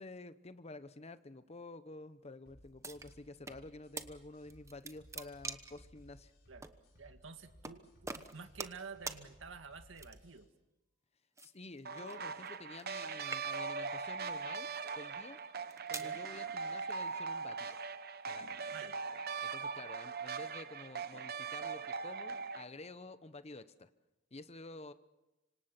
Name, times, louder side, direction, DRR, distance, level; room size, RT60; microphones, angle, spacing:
voice 1, 0.0-6.3 11.4-14.7 15.0-15.4 15.9-17.9 18.3-18.7 19.4-23.9 24.3-24.9, left 2 dB, 35° left, 12 dB, 1.0 m, -50 dB
sound 1, 2.5-10.4, equal, 55° left, 7.7 m, -61 dB
sound 2, 2.8-3.6 4.0-4.1 4.5-5.8 6.6-6.8 7.6-7.8 8.1-8.8 9.1-9.2 10.0-10.4 11.4-13.0 13.2-13.8 14.5-14.8 15.5-16.1, right 3 dB, 15° right, 1.1 m, -44 dB
voice 2, 6.9-7.9 8.2-10.5 16.0-16.2 18.7-18.9, right 5 dB, 90° right, 8 dB, 1.8 m, -50 dB
sound 3, 11.9-22.6, right 5 dB, 55° right, 1.0 m, -40 dB
26.0 x 25.5 x 6.0 m, 1.0 s
head